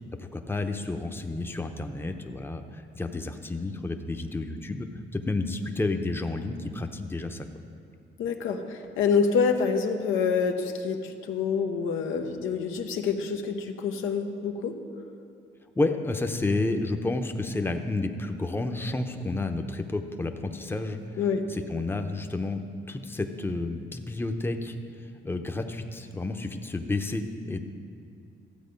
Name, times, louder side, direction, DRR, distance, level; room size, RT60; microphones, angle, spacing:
voice 1, 0.2-7.5 15.8-21.2 21.5-22.6 22.9-24.7 25.2-27.6, left 2 dB, 10° left, 6 dB, 0.7 m, -30 dB
voice 2, 8.2-14.8 21.2-21.4, left 5 dB, 90° left, 5 dB, 0.9 m, -27 dB
13.5 x 7.7 x 5.2 m, 2.4 s
cardioid pair, 90°, 20 cm